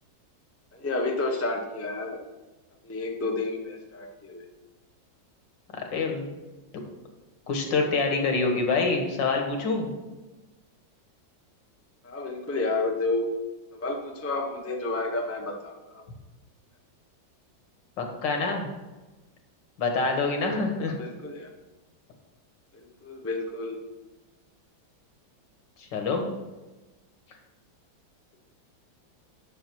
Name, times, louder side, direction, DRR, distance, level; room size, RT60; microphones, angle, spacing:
voice 1, 0.7-2.2 2.8-4.4 12.0-13.3 13.7-16.0 21.0-21.5 22.7-23.8, left 2 dB, 20° left, 2 dB, 0.3 m, -30 dB
voice 2, 5.7-6.4 7.5-9.9 18.0-18.7 19.8-21.0 25.8-26.2, left 4 dB, 65° left, 3 dB, 2.0 m, -26 dB
9.4 x 6.2 x 4.6 m, 1.1 s
omnidirectional pair, 2.1 m